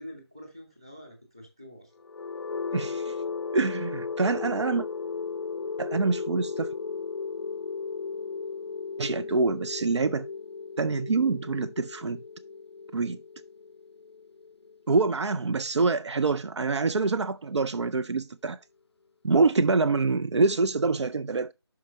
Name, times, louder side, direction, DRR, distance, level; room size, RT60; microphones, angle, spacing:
voice 1, 0.0-1.9 2.7-3.1, equal, 10° right, 0.8 m, -47 dB
sound 1, 2.0-15.9, left 5 dB, 70° left, 0.4 m, -36 dB
voice 2, 2.7-3.1 3.5-4.9 5.8-6.7 9.0-10.3 10.8-12.2 12.9-13.2 14.9-18.6 19.2-21.5, right 4 dB, 90° right, 0.5 m, -25 dB
5.7 x 4.7 x 5.2 m
figure-of-eight pair, 180°, 14 cm